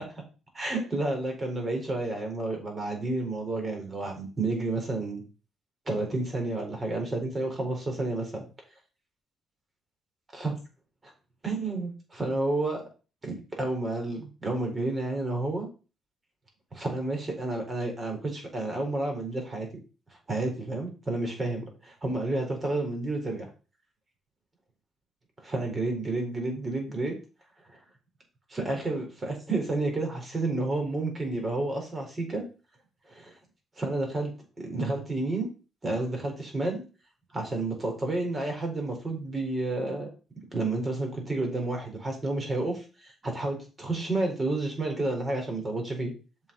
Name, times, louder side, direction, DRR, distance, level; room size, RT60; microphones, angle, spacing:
voice 1, 0.5-5.2 5.9-8.3 10.3-10.6 11.0-11.1 11.4-12.8 13.2-15.7 16.7-19.7 20.3-23.5 25.4-27.1 27.7-27.8 28.5-32.4 33.1-33.3 33.8-34.3 34.6-35.5 35.8-36.8 37.3-40.1 40.5-46.1, right 2 dB, 30° right, 2 dB, 4.5 m, -30 dB
7.5 x 5.8 x 5.4 m, 0.33 s
cardioid pair, 90°, 0 cm